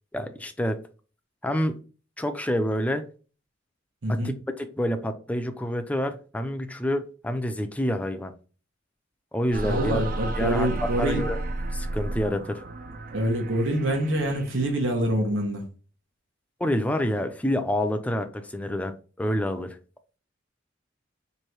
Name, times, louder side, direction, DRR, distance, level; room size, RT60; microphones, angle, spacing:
voice 1, 0.1-0.8 1.4-1.8 2.2-3.1 4.1-8.3 9.3-10.1 10.4-11.4 11.7-12.6 16.6-19.8, equal, 10° left, 0.4 m, -28 dB
voice 2, 4.0-4.4 9.6-11.2 13.1-15.6, right 1 dB, 90° right, 1.2 m, -26 dB
sound 1, 9.5-15.0, right 2 dB, 50° right, 0.5 m, -33 dB
3.0 x 2.7 x 4.5 m
head